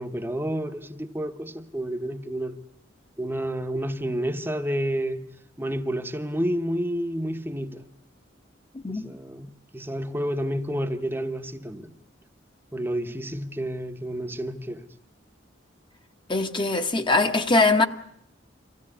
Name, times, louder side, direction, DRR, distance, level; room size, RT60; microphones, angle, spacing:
voice 1, 0.0-2.6 3.2-5.3 5.6-7.8 8.9-12.0 12.7-14.8, equal, 10° right, 1.0 m, -30 dB
voice 2, 16.3-17.8, left 3 dB, 25° left, 1.1 m, -21 dB
23.5 x 16.0 x 9.8 m
head